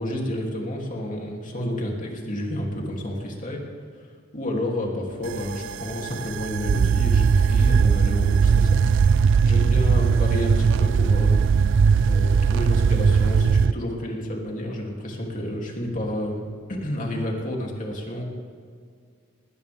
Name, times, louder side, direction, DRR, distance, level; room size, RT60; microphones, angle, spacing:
voice 1, 0.0-3.6 4.3-8.8 9.5-11.4 12.1-18.2, left 1 dB, 40° left, -1 dB, 2.9 m, -30 dB
sound 1, 5.2-13.7, right 6 dB, 60° right, 0.4 m, -19 dB
20.5 x 17.5 x 3.6 m, 2.1 s
head